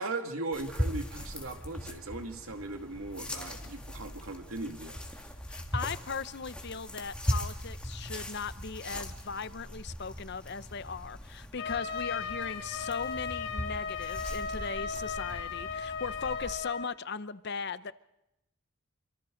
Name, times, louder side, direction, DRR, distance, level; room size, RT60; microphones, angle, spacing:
voice 1, 0.0-5.0, right 2 dB, 80° right, 5 dB, 2.2 m, -38 dB
sound 1, 0.5-16.5, equal, 5° left, 1.9 m, -39 dB
voice 2, 5.5-17.9, left 5 dB, 50° left, 15 dB, 0.7 m, -38 dB
Trumpet, 11.6-16.9, left 6 dB, 75° left, 5.3 m, -36 dB
27.5 x 25.5 x 3.9 m, 0.89 s
head